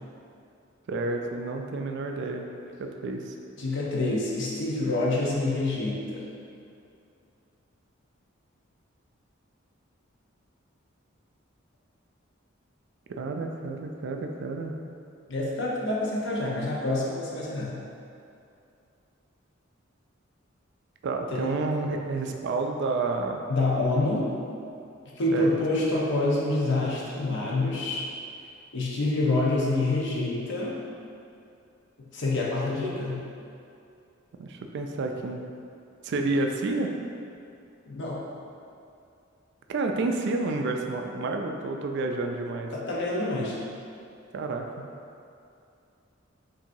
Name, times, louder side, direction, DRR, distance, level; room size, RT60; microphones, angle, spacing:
voice 1, 0.9-2.5 2.8-3.3 13.1-14.8 21.0-23.4 25.3-25.6 34.4-35.4 36.0-36.9 39.7-42.7 44.3-44.9, right 3 dB, 60° right, 3 dB, 0.4 m, -30 dB
voice 2, 3.6-6.3 15.3-17.8 21.3-21.5 23.5-24.3 25.2-28.0 28.7-30.8 32.1-33.2 37.9-38.2 42.7-43.6, left 2 dB, 60° left, -4 dB, 0.8 m, -27 dB
5.8 x 2.7 x 2.6 m, 2.6 s
head